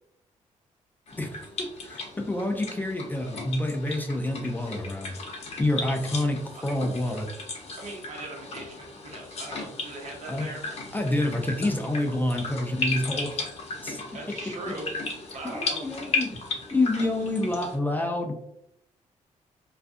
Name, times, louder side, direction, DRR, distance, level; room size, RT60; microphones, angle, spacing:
sound 1, 1.1-17.8, left 3 dB, 55° left, 0.7 m, -36 dB
voice 1, 1.2-5.1 5.6-7.3 10.3-10.5 10.9-13.3 13.8-14.0 14.7-14.8 15.5-16.4 16.7-18.3, left 1 dB, 15° left, 3 dB, 0.4 m, -28 dB
voice 2, 7.8-10.7 14.1-14.9 15.3-15.8, right 2 dB, 70° right, -1 dB, 0.9 m, -39 dB
2.4 x 2.3 x 2.5 m, 0.77 s
cardioid pair, 100°, 13 cm